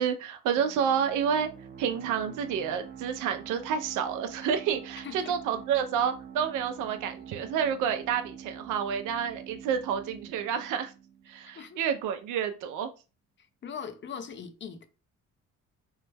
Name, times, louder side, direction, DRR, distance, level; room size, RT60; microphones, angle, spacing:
voice 1, 0.0-1.5 1.8-10.9 11.3-12.9, right 8 dB, 90° right, 0.5 m, -29 dB
sound 1, 0.6-12.0, right 8 dB, 35° right, 0.6 m, -46 dB
voice 2, 5.0-5.3 11.4-11.8 13.6-14.8, left 7 dB, 40° left, 0.5 m, -40 dB
3.1 x 2.1 x 3.3 m
cardioid pair, 90°, 30 cm